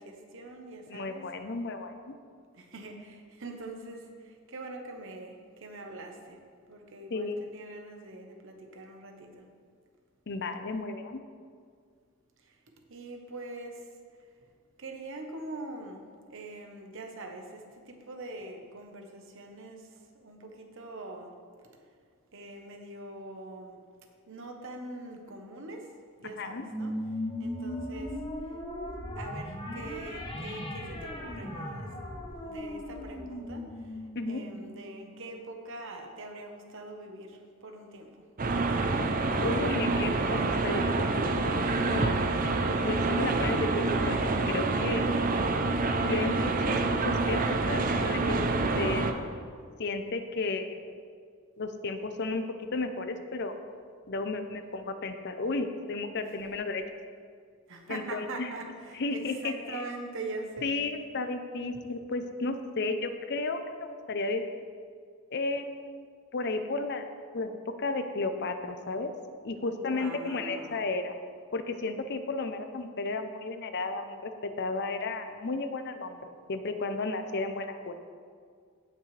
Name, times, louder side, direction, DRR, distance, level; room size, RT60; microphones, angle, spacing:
voice 1, 0.0-1.2 2.6-4.0 4.5-6.4 6.7-9.5 12.9-13.8 14.8-16.0 16.3-19.9 20.1-21.3 22.3-23.8 24.3-25.8 26.2-27.0 27.4-28.1 29.2-31.9 32.4-33.6 34.3-38.1 57.7-60.8 69.6-70.9, right 2 dB, 60° right, 3 dB, 1.1 m, -43 dB
voice 2, 0.9-2.1 7.1-7.4 10.3-11.2 26.2-26.6 34.1-34.4 39.4-41.3 41.9-42.1 42.9-44.2 44.5-45.0 46.0-48.4 48.8-49.1 49.8-50.9 51.6-52.4 52.7-53.5 54.1-56.8 57.9-58.5 58.9-59.8 60.6-64.5 65.3-66.1 66.3-67.0 67.3-67.5 67.8-69.1 69.4-71.1 71.5-76.2 76.5-78.0, left 3 dB, 50° left, 8 dB, 0.6 m, -33 dB
sound 1, 26.6-35.4, left 1 dB, 20° left, 1.1 m, -38 dB
sound 2, 38.4-49.1, right 3 dB, 40° right, 0.6 m, -27 dB
16.5 x 6.0 x 3.3 m, 2.1 s
head